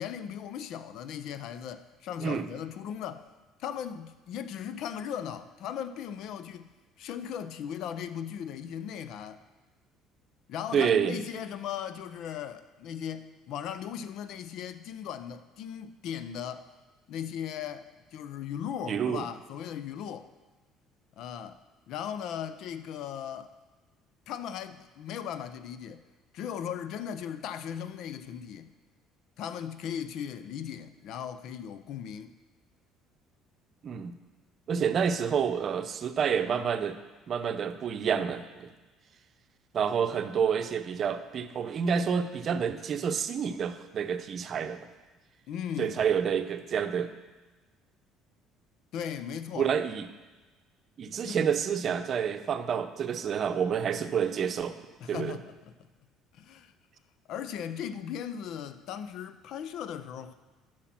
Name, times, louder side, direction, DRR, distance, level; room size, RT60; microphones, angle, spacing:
voice 1, 0.0-3.3 3.6-6.7 7.0-9.4 10.5-16.7 17.1-20.3 21.2-21.6 21.9-23.5 24.3-26.0 26.3-28.7 29.4-32.3 45.5-46.1 48.9-49.7 51.2-51.4 55.0-55.7 56.3-56.7 57.3-60.3, left 9 dB, 65° left, 0.6 m, -37 dB
voice 2, 10.7-11.2 18.9-19.3 33.8-34.1 34.7-37.0 37.3-38.7 39.7-44.8 45.8-47.1 49.6-50.1 51.0-54.8 55.1-55.4, right 7 dB, 50° right, 0.7 m, -28 dB
10.0 x 6.4 x 5.9 m
supercardioid pair, 80°, 0 cm